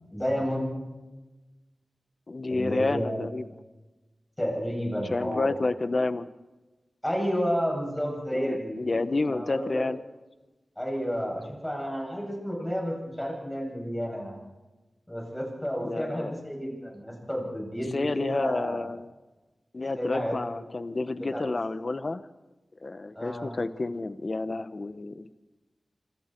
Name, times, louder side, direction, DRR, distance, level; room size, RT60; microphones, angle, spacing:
voice 1, 0.1-0.8 2.5-3.3 4.4-5.5 7.0-8.8 9.3-9.8 10.8-14.3 15.1-18.8 19.9-20.4 21.3-21.4 23.1-23.6, equal, 10° left, -1 dB, 7.9 m, -31 dB
voice 2, 2.3-3.5 5.1-6.3 8.3-10.0 15.8-16.4 17.9-19.1 19.7-22.2 22.8-25.3, left 3 dB, 45° left, 13 dB, 1.0 m, -30 dB
26.5 x 26.0 x 4.6 m, 1.1 s
wide cardioid pair, 95°, 0 cm